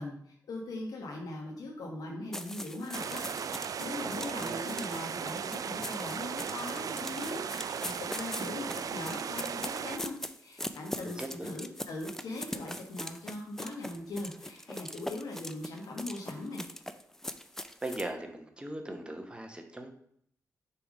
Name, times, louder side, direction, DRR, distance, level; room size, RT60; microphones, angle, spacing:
voice 1, 0.0-3.2 3.5-16.6, left 2 dB, 90° left, 0 dB, 1.1 m, -40 dB
sound 1, 2.3-18.1, left 1 dB, 5° left, 0.5 m, -42 dB
sound 2, 2.9-10.0, right 7 dB, 70° right, 0.4 m, -37 dB
voice 2, 4.0-4.7 11.0-11.5 17.8-19.9, right 1 dB, 15° right, 4 dB, 1.0 m, -39 dB
6.7 x 3.5 x 5.0 m, 0.66 s
cardioid pair, 65°, 6 cm